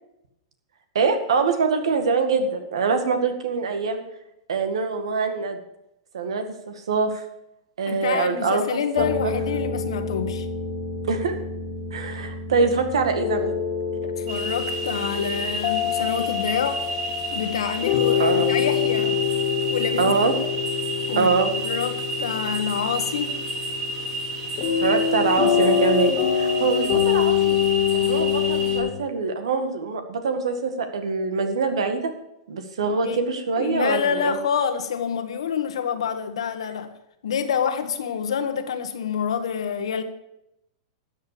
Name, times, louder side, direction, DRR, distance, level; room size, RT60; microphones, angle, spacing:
voice 1, 1.0-4.0 4.5-5.6 6.1-7.2 7.8-9.3 11.1-11.4 11.9-13.6 18.2-18.6 20.0-20.3 21.2-21.5 24.8-27.6 27.9-32.1 32.5-34.4, right 4 dB, 85° right, 1.9 m, -24 dB
voice 2, 7.9-10.5 14.0-16.8 17.3-19.2 19.7-20.1 21.1-21.4 21.6-23.4 26.6-26.7 33.0-33.2 33.6-36.9 37.2-40.0, left 7 dB, 85° left, 1.4 m, -27 dB
sound 1, 9.0-28.9, left 8 dB, 50° left, 1.8 m, -26 dB
sound 2, 14.3-28.8, right 2 dB, 50° right, 3.0 m, -31 dB
13.5 x 8.2 x 5.1 m
hypercardioid pair, 125°, 3 cm